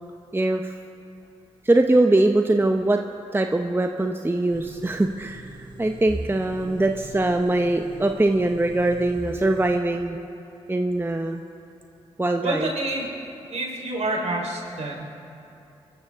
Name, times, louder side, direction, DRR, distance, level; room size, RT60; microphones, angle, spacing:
voice 1, 0.3-0.8 1.6-3.0 3.3-10.2 10.7-11.4 12.2-12.7, right 2 dB, 15° right, 4 dB, 0.9 m, -22 dB
sound 1, 4.5-9.8, right 2 dB, 40° right, 2.5 m, -43 dB
voice 2, 12.4-13.2 13.5-15.3, right 2 dB, 55° right, -1 dB, 4.2 m, -28 dB
23.5 x 14.0 x 3.7 m, 2.9 s
hypercardioid pair, 40°, 13 cm